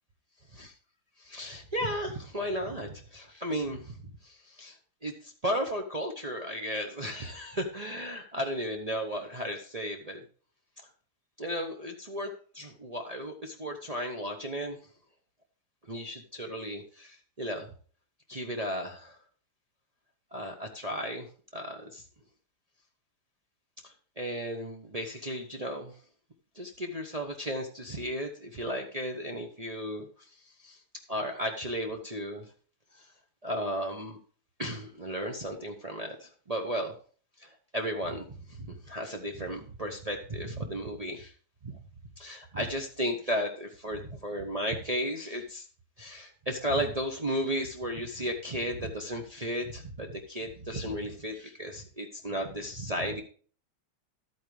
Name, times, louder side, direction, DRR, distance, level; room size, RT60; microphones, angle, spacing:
voice 1, 1.2-3.9 4.2-4.8 5.0-10.2 11.4-14.8 15.9-17.7 18.3-19.2 20.3-21.3 21.5-22.0 24.2-25.9 26.6-30.1 30.6-30.8 31.1-32.5 33.4-34.2 34.6-36.9 37.4-41.3 41.6-41.8 42.2-45.6 46.0-53.2, equal, 60° right, 1 dB, 0.3 m, -34 dB
12.0 x 8.8 x 3.2 m, 0.42 s
omnidirectional pair, 2.4 m